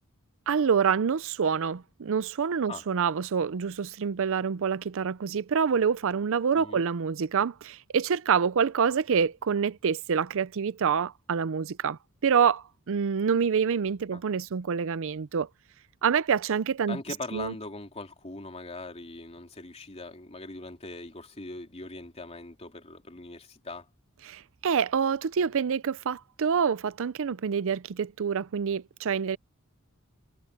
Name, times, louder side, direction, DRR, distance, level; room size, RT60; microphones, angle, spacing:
voice 1, 0.5-15.5 16.0-17.0 17.3-17.5 24.3-29.4, right 6 dB, 65° right, 0.5 m, -27 dB
voice 2, 16.9-23.9, left 2 dB, 30° left, 3.2 m, -41 dB
head